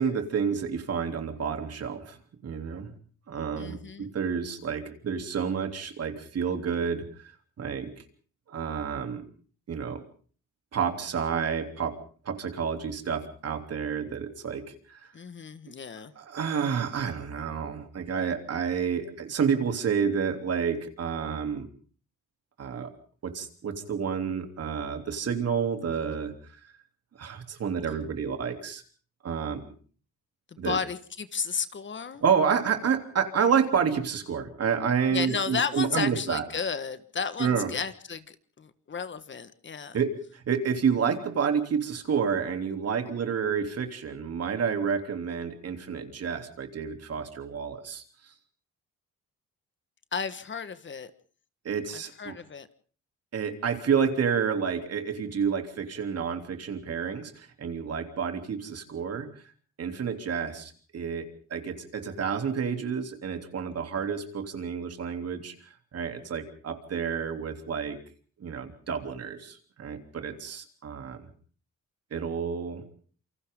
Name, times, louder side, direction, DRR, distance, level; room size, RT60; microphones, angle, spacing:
voice 1, 0.0-2.2 2.4-2.9 3.3-7.0 7.6-7.9 8.5-9.2 9.7-10.0 10.7-12.0 12.2-14.6 16.2-21.7 22.6-22.9 23.2-26.3 27.2-28.8 29.2-29.6 30.6-30.8 32.2-36.4 37.4-37.7 39.9-48.0 51.6-52.3 53.3-59.3 59.8-65.5 65.9-68.0 68.4-71.2 72.1-72.8, right 6 dB, 55° right, 6 dB, 3.3 m, -29 dB
voice 2, 3.6-4.1 15.1-16.1 30.6-32.2 35.1-40.0 50.1-51.1 51.9-52.7, left 6 dB, 40° left, 12 dB, 1.6 m, -33 dB
28.0 x 24.5 x 3.9 m, 0.43 s
cardioid pair, 90°, 30 cm